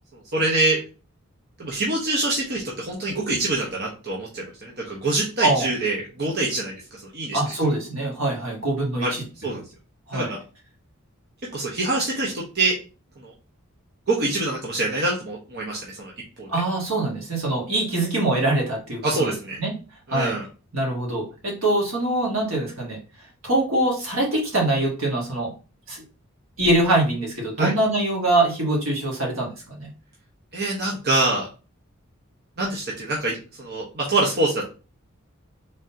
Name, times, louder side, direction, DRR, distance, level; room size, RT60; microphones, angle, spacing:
voice 1, 0.3-0.8 1.6-6.7 7.1-7.4 9.0-9.1 9.4-9.6 10.1-10.4 11.5-12.7 13.2-13.3 14.1-16.1 16.4-16.5 19.0-19.6 20.1-20.4 27.6-27.7 30.5-31.4 32.6-34.6, right 2 dB, 50° right, -2 dB, 1.0 m, -25 dB
voice 2, 7.3-9.6 10.1-10.3 16.5-19.3 19.6-19.7 20.1-20.3 20.7-23.0 23.4-25.5 25.9-26.0 26.6-29.9, right 2 dB, 75° right, -2 dB, 2.0 m, -23 dB
3.8 x 3.8 x 2.8 m, 0.33 s
head